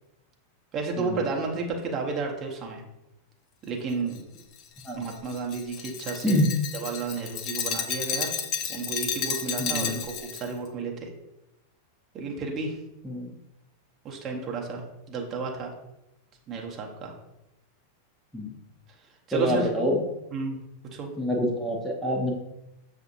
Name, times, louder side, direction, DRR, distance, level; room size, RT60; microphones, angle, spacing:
voice 1, 0.7-2.8 3.6-4.2 4.9-6.4 6.7-8.3 8.7-10.1 10.4-11.1 12.1-12.7 14.0-15.7 16.5-17.1 19.3-19.7 20.3-20.6 20.9-21.1, right 4 dB, 30° right, 0 dB, 0.8 m, -32 dB
Glass, 4.1-10.5, left 7 dB, 35° left, 0.5 m, -32 dB
voice 2, 6.2-6.6 9.6-10.0 13.0-13.3 18.3-18.5 19.3-20.0 21.2-22.3, equal, ahead, -2 dB, 0.7 m, -26 dB
6.5 x 2.6 x 2.6 m, 0.92 s
figure-of-eight pair, 90°, 0 cm